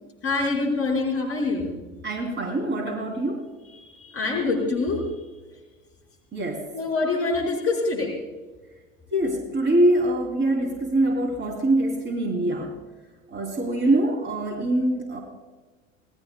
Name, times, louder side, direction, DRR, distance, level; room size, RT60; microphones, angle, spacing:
voice 1, 0.2-1.7 3.6-5.1 6.7-8.1, left 3 dB, 35° left, -1 dB, 5.0 m, -25 dB
voice 2, 2.0-3.5 6.3-6.6 9.1-12.7 13.3-15.2, right 1 dB, 25° right, 2 dB, 3.2 m, -24 dB
30.0 x 19.0 x 2.2 m, 1.3 s
figure-of-eight pair, 75°, 40 cm